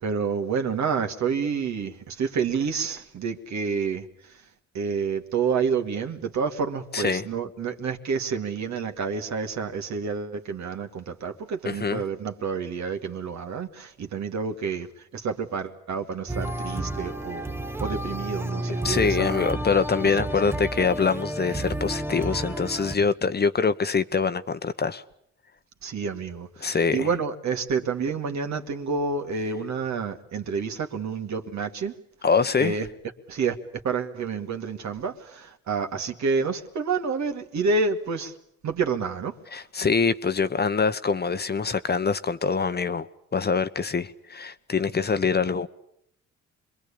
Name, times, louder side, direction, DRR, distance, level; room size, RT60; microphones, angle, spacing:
voice 1, 0.0-4.1 4.7-14.9 15.1-17.5 17.8-19.5 25.8-31.9 32.6-32.9 33.3-33.6 33.8-38.3 38.6-39.3, right 5 dB, 60° right, 2.4 m, -29 dB
voice 2, 6.9-7.2 11.6-12.0 18.8-25.0 26.6-27.1 32.2-32.7 39.5-43.1 43.3-45.7, left 5 dB, 30° left, 1.1 m, -24 dB
sound 1, 16.3-23.0, right 1 dB, 5° right, 1.1 m, -31 dB
26.0 x 22.0 x 8.7 m
supercardioid pair, 70°, 32 cm